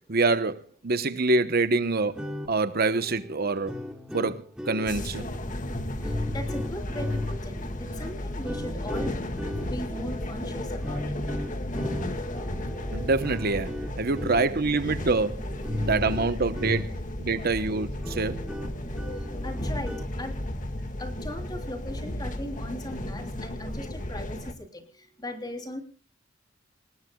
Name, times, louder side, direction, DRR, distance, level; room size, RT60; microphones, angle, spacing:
voice 1, 0.1-3.7 4.1-5.3 12.9-18.4, right 3 dB, 50° right, 0.9 m, -26 dB
sound 1, 2.1-17.2 17.6-17.7 18.0-20.2, left 1 dB, 5° right, 2.5 m, -37 dB
sound 2, 4.9-24.5, left 1 dB, 40° left, 1.9 m, -34 dB
voice 2, 6.0-9.2 9.7-11.0 19.4-20.4 21.0-24.8 25.2-25.8, left 1 dB, 20° left, 3.3 m, -38 dB
27.5 x 19.5 x 2.3 m
head